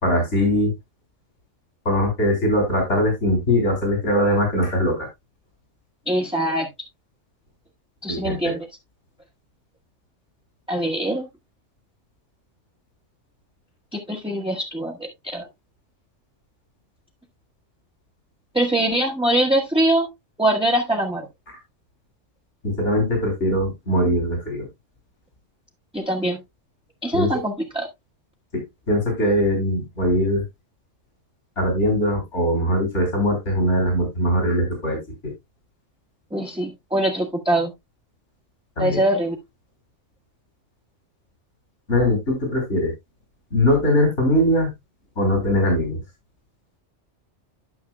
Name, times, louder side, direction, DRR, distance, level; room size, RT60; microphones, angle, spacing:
voice 1, 0.0-0.7 1.9-5.1 8.1-8.5 22.6-24.7 27.1-27.4 28.5-28.6 28.9-30.4 31.6-35.0 35.2-35.3 38.8-39.0 41.9-42.9 43.5-44.7 45.2-46.0, equal, 70° left, 2 dB, 3.7 m, -21 dB
voice 2, 6.1-6.7 8.0-8.7 10.7-11.2 13.9-15.5 18.5-20.1 20.4-21.3 25.9-26.4 27.0-27.9 36.3-37.7 38.8-39.3, right 1 dB, 5° right, 0 dB, 1.1 m, -23 dB
12.0 x 6.5 x 2.2 m, 0.19 s
omnidirectional pair, 1.3 m